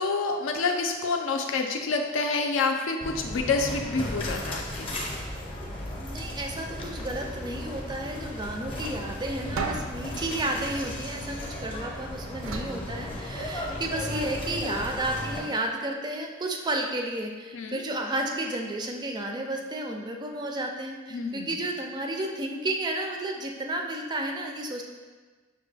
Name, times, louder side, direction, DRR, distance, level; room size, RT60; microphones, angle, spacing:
voice 1, 0.0-5.1 17.5-17.8 21.1-21.6, left 4 dB, 75° left, 3 dB, 0.4 m, -28 dB
sound 1, 3.0-15.4, left 1 dB, 25° left, 0.7 m, -35 dB
voice 2, 6.0-24.8, right 1 dB, 20° right, 2 dB, 0.3 m, -32 dB
sound 2, 9.6-11.8 12.4-13.8, right 4 dB, 85° right, 0.5 m, -37 dB
5.7 x 2.2 x 3.3 m, 1.4 s
head